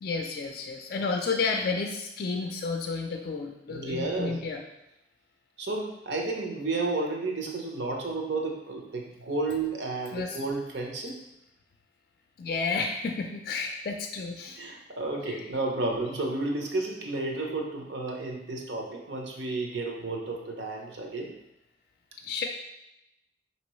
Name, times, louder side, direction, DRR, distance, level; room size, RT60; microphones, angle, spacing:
voice 1, 0.0-4.6 10.1-10.4 12.4-14.6 22.2-22.4, left 4 dB, 50° left, 3 dB, 0.4 m, -31 dB
voice 2, 3.7-4.4 5.6-11.2 14.6-21.3, right 2 dB, 70° right, 0 dB, 0.8 m, -32 dB
5.2 x 2.9 x 3.1 m, 0.88 s
head